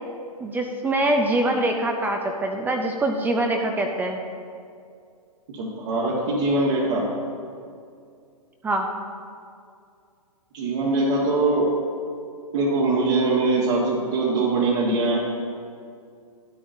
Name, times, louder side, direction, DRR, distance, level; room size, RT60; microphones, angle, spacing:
voice 1, 0.4-4.2 8.6-8.9, right 1 dB, 10° right, 3 dB, 0.4 m, -24 dB
voice 2, 5.5-7.0 10.5-11.7 12.5-15.2, right 2 dB, 50° right, -6 dB, 1.7 m, -22 dB
12.0 x 10.0 x 2.6 m, 2.4 s
hypercardioid pair, 130°, 20 cm